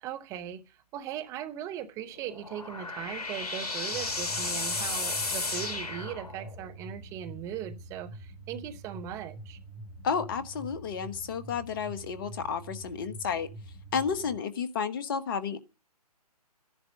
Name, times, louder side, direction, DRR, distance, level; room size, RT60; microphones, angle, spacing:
voice 1, 0.0-9.6, right 10 dB, 15° right, 0.9 m, -39 dB
sound 1, 2.2-6.7, left 3 dB, 70° left, 1.8 m, -33 dB
sound 2, 3.9-14.4, right 2 dB, 15° left, 3.3 m, -46 dB
voice 2, 10.0-13.5 13.9-15.6, left 6 dB, 35° left, 1.3 m, -31 dB
15.0 x 10.5 x 6.5 m
figure-of-eight pair, 140°, 20 cm